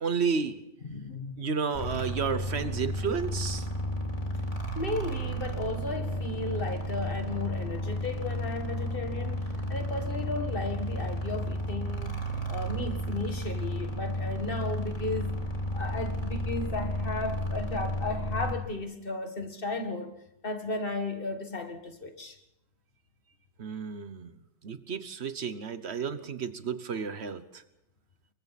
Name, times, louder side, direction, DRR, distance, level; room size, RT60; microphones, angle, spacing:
voice 1, 0.0-0.5 1.4-3.7 23.6-24.3 24.6-27.6, right 6 dB, 65° right, 1.3 m, -32 dB
voice 2, 0.8-1.5 4.8-12.2 12.5-15.4 15.7-20.2 20.4-22.4, left 2 dB, 50° left, 1.9 m, -35 dB
sound 1, 1.7-18.5, equal, 30° left, 3.4 m, -33 dB
28.0 x 23.5 x 4.2 m
omnidirectional pair, 1.2 m